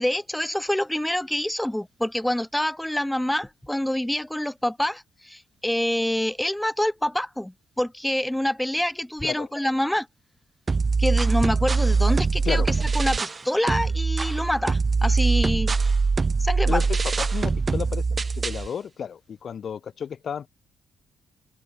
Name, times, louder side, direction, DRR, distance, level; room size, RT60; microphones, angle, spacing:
voice 1, 0.0-10.1 11.0-15.7 16.4-16.8, left 1 dB, 5° left, 2.5 m, -26 dB
sound 1, 10.7-13.4 13.7-18.7, right 4 dB, 30° right, 4.0 m, -23 dB
voice 2, 16.7-18.1 18.4-20.5, left 7 dB, 55° left, 5.4 m, -32 dB
open air
cardioid pair, 90°, 0 cm